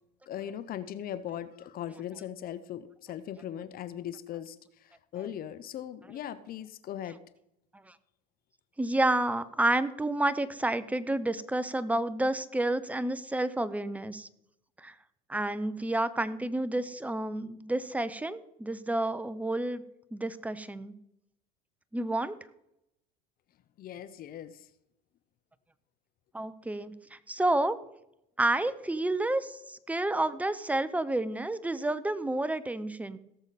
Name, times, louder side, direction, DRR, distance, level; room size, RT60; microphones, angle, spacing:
voice 1, 0.3-7.2 23.8-24.7, left 10 dB, 45° left, 14 dB, 0.8 m, -39 dB
voice 2, 8.8-14.3 14.8-14.9 15.3-19.8 20.1-20.9 21.9-22.4 26.3-27.8 28.4-33.2, right 2 dB, 5° right, 14 dB, 0.8 m, -30 dB
18.0 x 6.9 x 4.2 m, 0.82 s
supercardioid pair, 95°, 21 cm